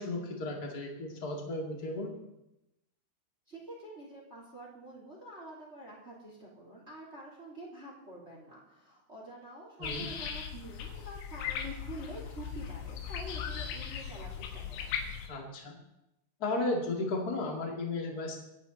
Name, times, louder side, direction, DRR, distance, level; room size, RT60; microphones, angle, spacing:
voice 1, 0.0-2.1 9.8-10.1 15.3-15.8 16.4-18.4, left 2 dB, 30° left, 1 dB, 1.8 m, -34 dB
voice 2, 3.5-15.0, right 1 dB, 15° right, -2 dB, 2.8 m, -47 dB
sound 1, 9.8-15.3, left 8 dB, 75° left, 4.0 m, -38 dB
26.5 x 10.5 x 4.1 m, 0.90 s
omnidirectional pair, 5.6 m